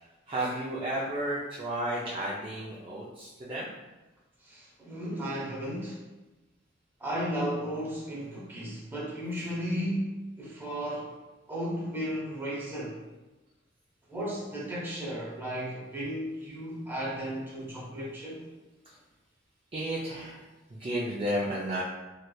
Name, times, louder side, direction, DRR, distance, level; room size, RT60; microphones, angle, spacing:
voice 1, 0.3-3.7 19.7-21.8, right 1 dB, 25° right, -7 dB, 0.4 m, -33 dB
voice 2, 4.4-6.0 7.0-11.1 11.5-13.0 14.1-18.5, equal, 10° right, -6 dB, 0.8 m, -34 dB
3.2 x 3.0 x 2.2 m, 1.1 s
head